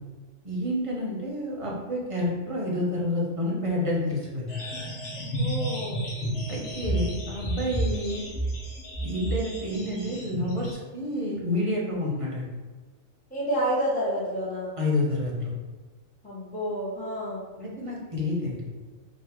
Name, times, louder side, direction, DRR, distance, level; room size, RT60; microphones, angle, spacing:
voice 1, 0.4-4.6 6.5-8.3 9.0-12.4 14.8-15.5 17.6-18.6, left 1 dB, 25° right, -4 dB, 0.9 m, -29 dB
sound 1, 4.5-10.7, right 1 dB, 65° left, 1.3 m, -31 dB
voice 2, 5.4-6.0 13.3-14.7 16.2-17.4, equal, 5° left, -7 dB, 0.8 m, -29 dB
3.8 x 2.4 x 4.4 m, 1.3 s
omnidirectional pair, 1.4 m